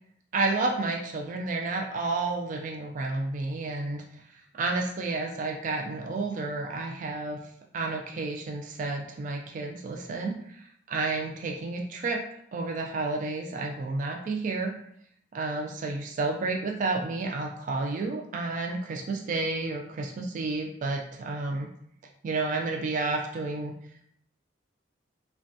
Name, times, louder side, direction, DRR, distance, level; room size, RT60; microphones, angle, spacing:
voice 1, 0.3-4.0 4.3-7.4 7.7-12.2 12.5-14.7 15.3-21.7 22.2-23.7, right 3 dB, 45° right, 1 dB, 0.3 m, -31 dB
3.3 x 2.2 x 2.6 m, 0.68 s
head